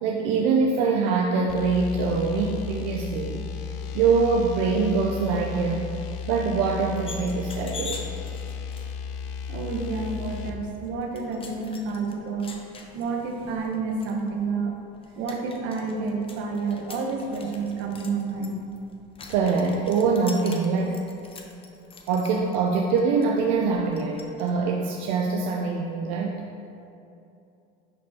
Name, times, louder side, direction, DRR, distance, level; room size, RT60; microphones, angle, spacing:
voice 1, 0.0-3.7 3.9-8.0 19.3-21.0 22.1-26.4, right 4 dB, 85° right, 0 dB, 0.6 m, -24 dB
sound 1, 1.5-10.6, left 6 dB, 75° left, 0.6 m, -34 dB
sound 2, 7.1-24.5, left 4 dB, 25° left, 0.7 m, -45 dB
voice 2, 9.5-12.5 12.9-14.7 15.1-18.7, right 4 dB, 70° right, 2 dB, 1.0 m, -29 dB
11.0 x 4.2 x 2.8 m, 2.7 s
cardioid pair, 115°, 21 cm